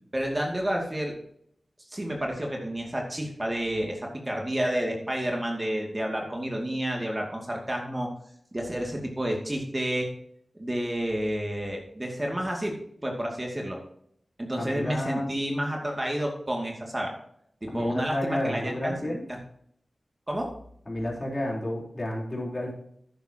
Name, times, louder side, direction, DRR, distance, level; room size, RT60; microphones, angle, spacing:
voice 1, 0.1-1.1 1.9-8.1 8.5-10.1 10.6-12.7 13.0-13.8 14.4-17.1 17.6-19.4 20.3-20.5, right 1 dB, 25° right, 0 dB, 2.5 m, -30 dB
voice 2, 14.6-15.3 17.7-19.2 20.9-22.7, left 1 dB, 35° left, -2 dB, 4.0 m, -31 dB
11.0 x 9.8 x 3.0 m, 0.68 s
cardioid pair, 45°, 0 cm